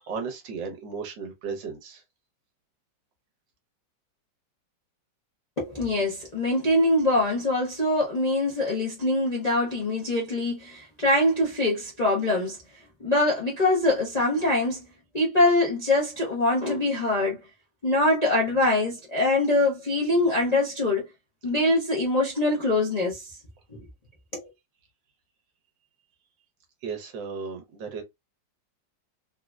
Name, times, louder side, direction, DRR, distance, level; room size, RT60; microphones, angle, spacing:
voice 1, 0.0-2.0 26.8-28.0, right 5 dB, 80° right, 1.6 m, -35 dB
voice 2, 5.6-12.6 13.0-14.8 15.1-17.4 17.8-21.0 21.4-23.4 23.7-23.8 24.3-24.5, left 2 dB, 45° left, 0.5 m, -23 dB
3.8 x 2.0 x 2.3 m
omnidirectional pair, 2.0 m